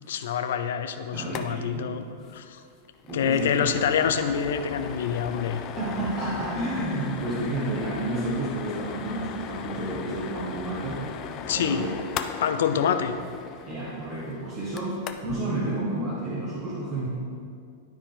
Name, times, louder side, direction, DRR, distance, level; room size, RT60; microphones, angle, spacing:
voice 1, 0.1-2.0 2.3-2.6 3.1-5.6 11.4-12.0 12.4-13.2, left 7 dB, 80° left, 9 dB, 0.6 m, -26 dB
voice 2, 1.1-1.9 3.1-3.6 5.7-11.1 11.5-11.9 12.7-12.8 13.7-17.1, right 2 dB, 35° right, -7 dB, 1.4 m, -31 dB
sound 1, 1.2-1.5 1.7-1.8 2.2-2.4 2.7-15.4, left 7 dB, 35° left, 0.5 m, -38 dB
12.0 x 4.4 x 3.9 m, 2.3 s
supercardioid pair, 150°, 0 cm